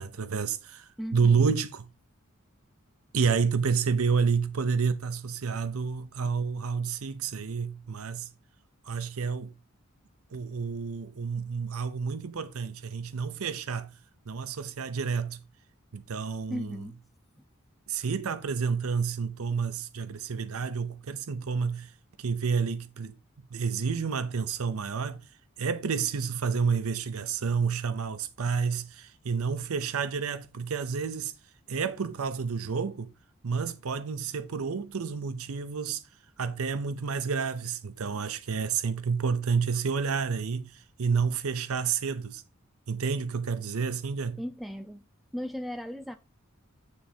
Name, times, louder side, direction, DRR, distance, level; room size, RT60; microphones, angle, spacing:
voice 1, 0.0-1.9 3.1-8.3 8.8-9.5 10.3-14.0 14.3-15.4 15.9-16.8 17.9-21.9 22.2-23.2 23.5-25.2 25.6-31.3 31.7-33.1 33.4-36.0 36.4-42.4 42.9-44.4, right 5 dB, 85° right, 0.6 m, -29 dB
voice 2, 1.0-1.5 16.5-17.0 17.4-17.5 44.4-45.0 45.3-46.2, equal, ahead, 0.6 m, -36 dB
9.7 x 3.4 x 4.3 m
head